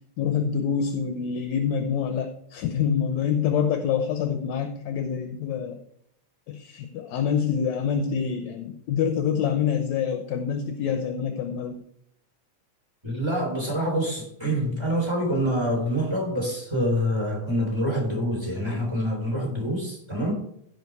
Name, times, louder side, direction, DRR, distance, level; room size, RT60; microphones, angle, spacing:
voice 1, 0.2-5.8 6.5-11.7, left 7 dB, 70° left, 7 dB, 2.0 m, -26 dB
voice 2, 13.0-20.3, equal, 10° right, -1 dB, 3.3 m, -26 dB
16.0 x 5.3 x 4.7 m, 0.72 s
omnidirectional pair, 3.5 m